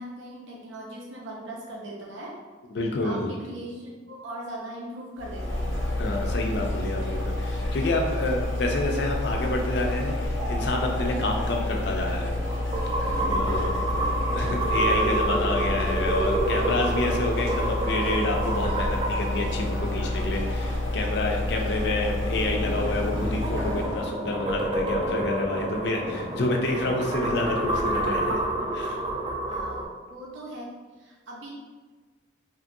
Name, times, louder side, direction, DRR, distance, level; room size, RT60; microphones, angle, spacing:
voice 1, 0.0-2.3 3.0-5.8 29.5-30.7 31.0-31.5, right 1 dB, 80° right, -3 dB, 0.6 m, -39 dB
voice 2, 2.7-3.3 6.0-12.3 13.3-13.8 14.3-28.4 28.7-29.0, left 2 dB, 60° left, 2 dB, 0.4 m, -28 dB
sound 1, 5.2-24.1, left 1 dB, 85° left, 0.8 m, -29 dB
sound 2, 8.7-28.3, equal, ahead, 0.7 m, -42 dB
sound 3, 10.4-21.0 23.0-29.8, right 2 dB, 25° right, 0.3 m, -29 dB
2.9 x 2.5 x 2.6 m, 1.4 s
head